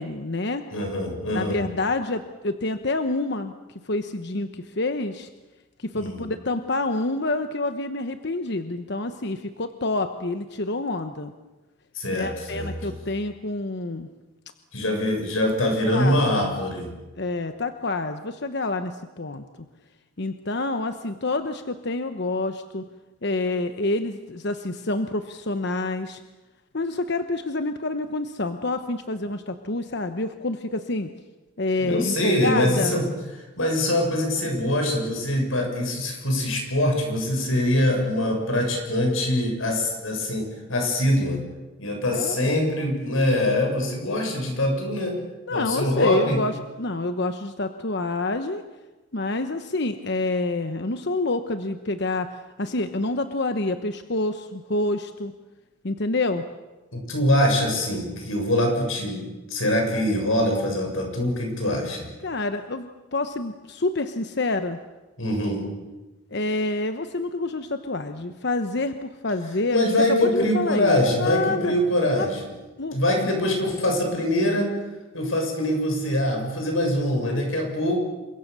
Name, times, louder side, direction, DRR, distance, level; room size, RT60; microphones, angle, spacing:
voice 1, 0.0-0.6 1.3-3.5 3.8-5.3 5.8-11.3 12.1-14.1 15.9-16.2 16.4-16.5 17.2-19.4 20.2-22.9 23.2-26.2 26.7-31.1 31.6-33.0 42.1-42.4 45.5-48.6 49.1-55.3 55.8-56.5 62.2-64.8 66.3-71.7 72.2-72.3 72.8-73.0, left 2 dB, 55° left, 8 dB, 1.1 m, -27 dB
voice 2, 0.7-1.6 5.9-6.3 11.9-12.9 14.7-16.9 31.8-33.1 33.6-41.4 41.8-45.2 45.5-46.4 56.9-62.1 65.2-65.6 69.7-72.4 72.9-74.7 75.1-78.0, left 1 dB, 85° left, 2 dB, 7.3 m, -23 dB
28.5 x 24.0 x 6.9 m, 1.1 s
head